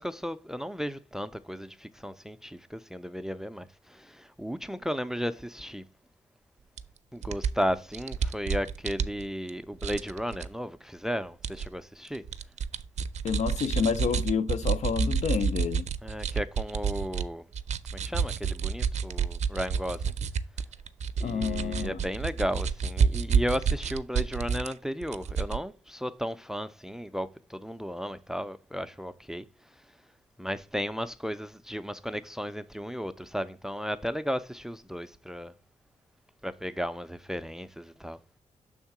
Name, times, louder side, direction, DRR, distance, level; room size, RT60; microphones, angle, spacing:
voice 1, 0.0-5.8 7.1-12.2 16.0-17.4 17.9-20.1 21.2-29.4 30.4-35.5 36.4-38.2, equal, 5° right, 0.4 m, -34 dB
sound 1, 6.8-6.9 7.2-9.5 9.8-10.5 11.4-11.7 12.0-17.2 17.5-24.7 25.0-25.6, right 6 dB, 70° right, 0.5 m, -29 dB
voice 2, 13.2-15.9 21.2-22.0, left 6 dB, 70° left, 0.5 m, -29 dB
6.3 x 3.6 x 5.8 m
wide cardioid pair, 120°, 12 cm